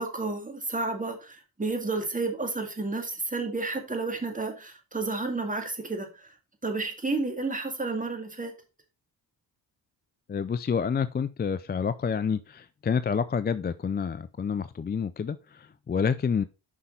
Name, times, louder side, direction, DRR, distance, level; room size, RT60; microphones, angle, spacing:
voice 1, 0.0-6.1 6.6-8.5, right 3 dB, 20° right, 2.1 m, -31 dB
voice 2, 10.3-16.4, left 6 dB, 25° left, 0.4 m, -28 dB
6.2 x 5.5 x 3.8 m
cardioid pair, 70°, 42 cm